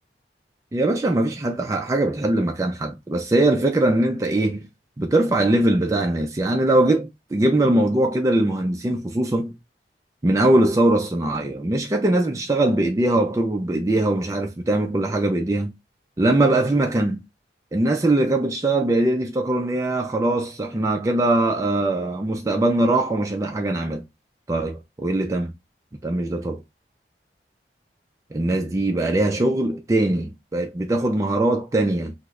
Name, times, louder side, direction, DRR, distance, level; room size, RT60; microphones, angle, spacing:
voice 1, 0.7-4.7 5.0-9.5 10.2-15.7 16.2-17.2 17.7-24.0 24.5-25.5 26.0-26.6 28.3-32.1, right 1 dB, 20° right, 0.3 m, -21 dB
3.0 x 2.0 x 3.5 m
head